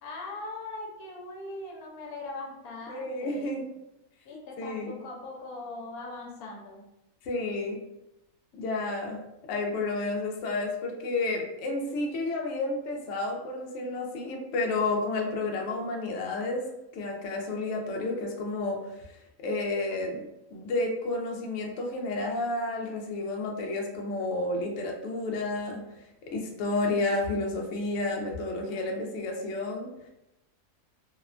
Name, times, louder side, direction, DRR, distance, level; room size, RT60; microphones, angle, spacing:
voice 1, 0.0-3.6 4.3-6.8 28.7-29.0, left 2 dB, 90° left, -1 dB, 1.1 m, -40 dB
voice 2, 2.9-3.6 4.3-5.0 7.2-7.8 8.5-16.6 16.9-18.8 19.4-20.2 20.5-25.8 26.3-29.9, left 2 dB, 65° left, 1 dB, 0.8 m, -31 dB
2.8 x 2.1 x 2.4 m, 0.90 s
omnidirectional pair, 1.5 m